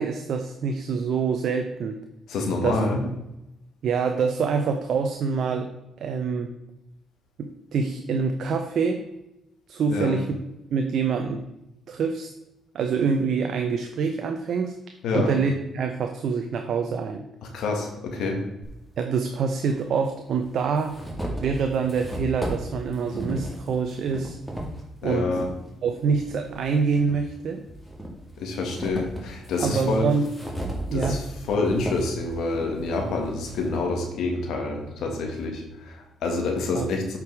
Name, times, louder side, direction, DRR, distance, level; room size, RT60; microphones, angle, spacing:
voice 1, 0.0-2.0 2.6-2.8 3.0-3.2 3.8-5.7 6.0-6.5 7.4-9.0 9.7-10.4 10.7-11.4 11.9-12.3 12.7-14.7 15.1-17.2 19.0-21.0 21.4-24.4 25.0-25.4 25.8-27.6 29.6-30.3 30.9-31.2 36.7-36.9, right 5 dB, 65° right, 5 dB, 0.7 m, -25 dB
voice 2, 2.3-3.0 9.9-10.2 15.0-15.3 17.5-18.4 25.0-25.5 28.4-30.1 30.9-31.2 31.5-37.2, left 3 dB, 80° left, 2 dB, 1.7 m, -27 dB
sound 1, 18.6-18.7 19.8-19.9 20.4-25.5 26.0-27.2 27.7-33.8, right 1 dB, ahead, 2.3 m, -35 dB
8.3 x 5.1 x 4.7 m, 0.90 s
cardioid pair, 90°, 0 cm